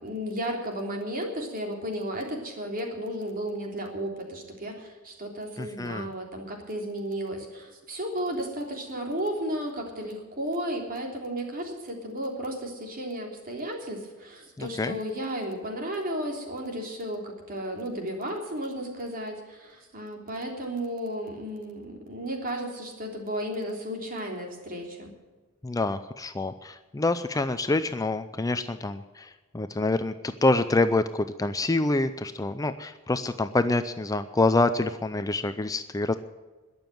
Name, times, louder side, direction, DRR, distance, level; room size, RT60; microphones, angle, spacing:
voice 1, 0.0-25.1, equal, 40° right, 1 dB, 3.4 m, -34 dB
voice 2, 5.6-6.1 14.6-15.0 25.6-36.1, left 2 dB, 15° left, 10 dB, 0.5 m, -26 dB
21.0 x 7.1 x 7.8 m, 1.3 s
head